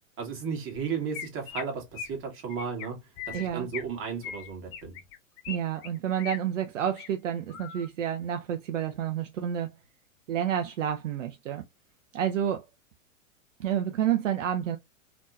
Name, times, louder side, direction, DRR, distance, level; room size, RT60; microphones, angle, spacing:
voice 1, 0.2-3.0 3.3-5.0, right 6 dB, 30° right, 1.7 m, -34 dB
Chirp tweet, 0.7-0.8 1.1-1.6 1.9-2.2 2.5-2.9 3.2-3.9 4.2-5.6 5.8-6.4 6.8-7.1 7.5-7.9, left 8 dB, 35° left, 0.8 m, -39 dB
voice 2, 3.3-3.7 5.5-9.7 10.3-11.6 12.1-12.6 13.6-14.8, right 10 dB, 65° right, 0.6 m, -29 dB
3.5 x 3.0 x 2.4 m
figure-of-eight pair, 110°, 40 cm